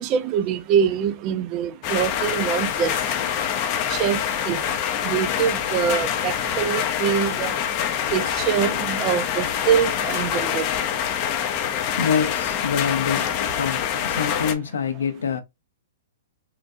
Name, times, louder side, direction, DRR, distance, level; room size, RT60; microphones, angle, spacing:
voice 1, 0.0-2.9 3.9-4.2 4.5-4.6 5.0-7.5 8.1-10.7, right 8 dB, 35° right, 0.4 m, -24 dB
sound 1, 1.8-14.5, left 9 dB, 40° left, 0.5 m, -25 dB
voice 2, 12.0-13.3 13.6-15.4, left 6 dB, 80° left, 0.7 m, -25 dB
3.8 x 2.2 x 2.6 m
hypercardioid pair, 125°, 0 cm